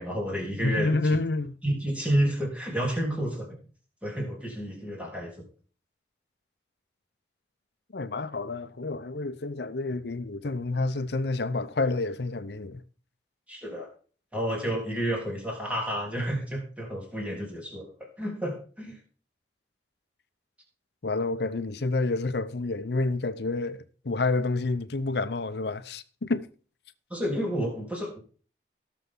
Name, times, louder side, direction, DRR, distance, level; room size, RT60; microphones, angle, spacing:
voice 1, 0.0-1.1 1.6-3.6 4.0-5.4 13.5-13.9 14.3-19.0 27.1-28.2, equal, 5° right, 3.5 m, -30 dB
voice 2, 0.6-1.5 7.9-12.8 21.0-26.5, left 3 dB, 65° left, 0.7 m, -29 dB
17.5 x 6.9 x 3.8 m
head